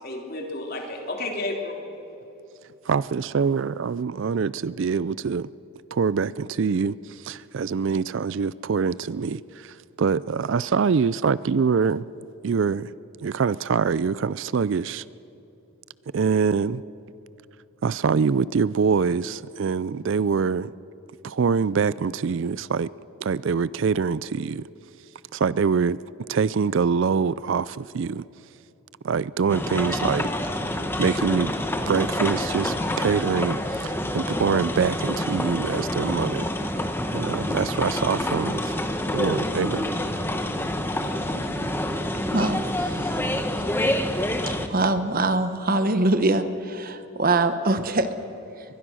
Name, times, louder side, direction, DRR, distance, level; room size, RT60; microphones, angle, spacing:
voice 1, 0.0-1.8 41.1-41.5, left 2 dB, 45° left, 1 dB, 3.2 m, -32 dB
voice 2, 2.9-5.5 5.9-12.1 12.4-12.9 13.2-15.0 16.1-16.8 17.8-20.7 21.2-22.9 23.2-24.7 25.3-26.0 26.3-28.2 29.0-30.3 30.7-36.5 37.1-38.7 39.1-39.9, right 5 dB, 55° right, 19 dB, 0.4 m, -24 dB
sound 1, 29.5-44.7, left 1 dB, 10° left, 1.1 m, -27 dB
voice 3, 42.3-43.3 44.7-48.1, right 2 dB, 40° right, 10 dB, 1.0 m, -23 dB
22.5 x 21.0 x 6.3 m, 2.9 s
head